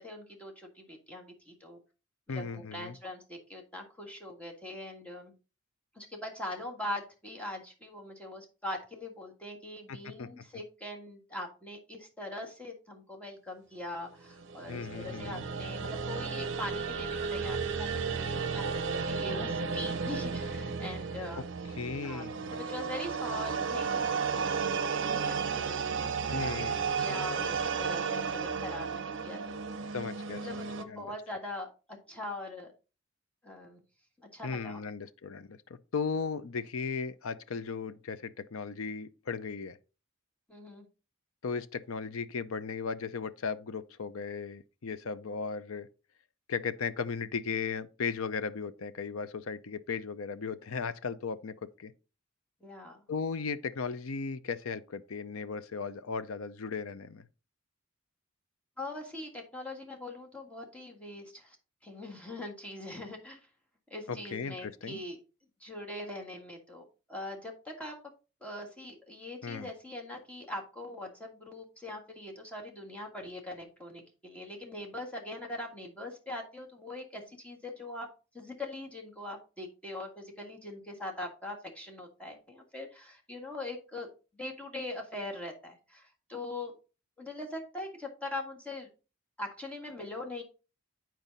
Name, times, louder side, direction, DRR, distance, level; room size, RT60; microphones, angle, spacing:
voice 1, 0.0-1.8 2.3-5.3 6.0-18.6 18.9-21.4 22.0-24.5 24.8-24.9 25.2-26.6 26.9-29.6 30.4-32.7 33.4-33.8 34.2-34.8 40.5-40.9 52.6-53.0 58.8-61.6 61.8-63.5 63.9-65.2 65.6-68.0 68.4-78.1 78.3-84.1 84.3-86.7 87.2-88.9 89.4-90.4, left 1 dB, 5° left, 1.7 m, -42 dB
voice 2, 2.3-3.0 9.9-10.3 14.7-15.4 21.8-22.5 26.3-27.0 29.9-30.5 30.9-31.1 34.4-39.8 41.4-45.9 46.5-51.9 53.1-57.3 64.1-65.0 69.4-69.7, left 5 dB, 75° left, 0.6 m, -36 dB
sound 1, 14.4-30.8, right 5 dB, 60° right, 0.7 m, -33 dB
9.0 x 4.6 x 4.0 m
head